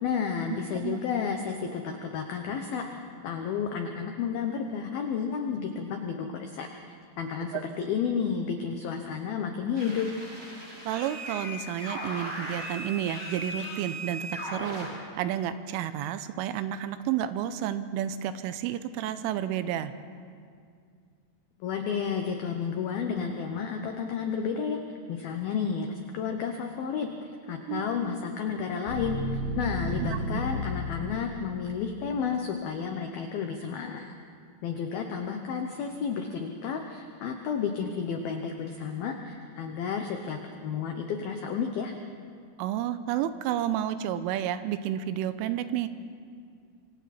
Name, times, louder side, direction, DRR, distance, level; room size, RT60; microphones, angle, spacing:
voice 1, 0.0-2.8 3.2-6.7 7.2-10.1 21.6-24.8 25.1-27.1 27.5-34.1 34.6-41.9, left 6 dB, 90° left, 4 dB, 2.1 m, -31 dB
sound 1, 9.7-14.9, equal, 25° right, 7.5 m, -38 dB
voice 2, 10.9-19.9 30.0-30.2 42.6-45.9, right 11 dB, 85° right, 12 dB, 3.1 m, -31 dB
sound 2, 27.7-31.8, right 1 dB, 50° right, 4.0 m, -34 dB
26.5 x 25.0 x 4.3 m, 2.2 s
omnidirectional pair, 5.9 m